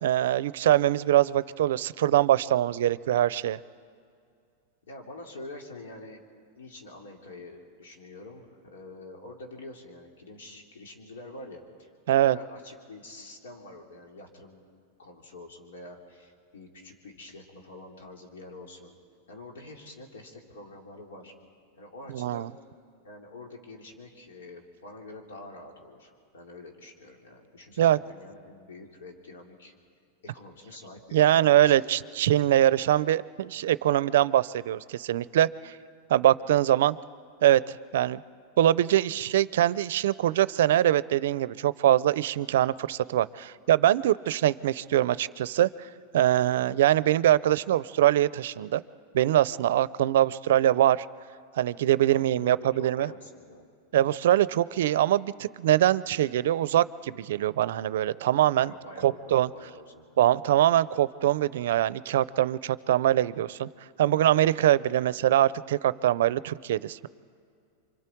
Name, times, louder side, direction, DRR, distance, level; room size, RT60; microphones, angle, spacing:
voice 1, 0.0-3.6 12.1-12.4 22.1-22.5 27.8-28.0 31.1-35.7 36.1-36.9 37.4-38.2 38.6-45.7 46.1-48.8 49.1-51.1 51.6-53.1 53.9-58.7 59.0-59.5 60.2-63.7 64.0-67.1, right 12 dB, 75° right, 18 dB, 0.5 m, -23 dB
voice 2, 4.9-6.3 6.5-11.9 12.1-14.6 15.0-18.9 19.3-21.3 21.8-22.5 23.0-29.7 30.2-32.2 52.1-53.7 58.6-60.0, left 2 dB, 90° left, 1 dB, 3.4 m, -46 dB
28.5 x 24.5 x 4.6 m, 2.3 s
supercardioid pair, 140°, 0 cm